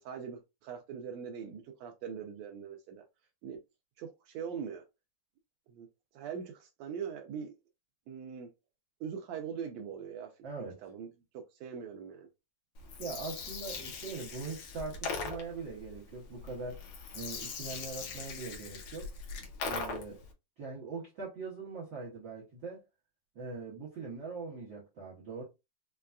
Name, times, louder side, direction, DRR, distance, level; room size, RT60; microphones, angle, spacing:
voice 1, 0.0-3.0 3.4-3.6 4.0-4.8 5.7-5.9 6.1-7.6 8.1-8.5 9.0-10.3 10.8-11.1 11.6-12.3, right 7 dB, 90° right, 1.5 m, -41 dB
voice 2, 10.4-10.8 13.0-19.1 19.6-20.2 20.6-22.8 23.3-25.4, right 4 dB, 70° right, 1.1 m, -42 dB
Gurgling, 12.8-20.3, left 4 dB, 80° left, 1.3 m, -40 dB
5.4 x 2.2 x 2.4 m
omnidirectional pair, 3.8 m